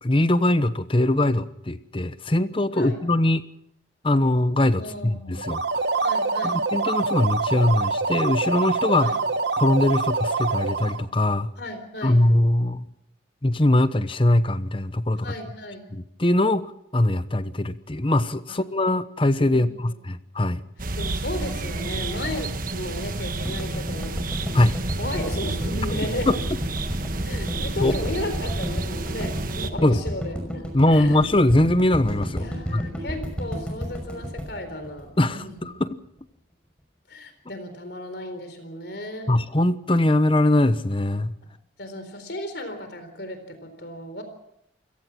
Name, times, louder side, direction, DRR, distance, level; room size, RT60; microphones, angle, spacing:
voice 1, 0.0-3.4 4.0-5.6 6.4-9.1 9.6-11.5 12.0-12.9 13.4-15.3 15.9-20.6 24.5-24.8 26.3-26.4 27.8-27.9 29.8-30.0 30.7-32.8 35.2-36.0 39.3-41.3, left 1 dB, 30° left, 13 dB, 0.9 m, -21 dB
voice 2, 4.8-5.4 6.0-6.6 9.0-9.3 11.6-12.3 15.2-15.9 18.5-18.6 19.5-19.7 21.0-24.2 25.0-26.3 27.2-31.3 32.4-35.8 37.1-39.3 41.8-44.2, left 1 dB, 60° left, 9 dB, 4.0 m, -35 dB
sound 1, 5.4-11.1, right 4 dB, 60° right, 1.1 m, -25 dB
sound 2, 20.8-29.7, right 2 dB, 45° right, 1.4 m, -30 dB
sound 3, 23.5-35.6, equal, 5° left, 5.6 m, -31 dB
28.5 x 17.5 x 6.1 m, 0.75 s
head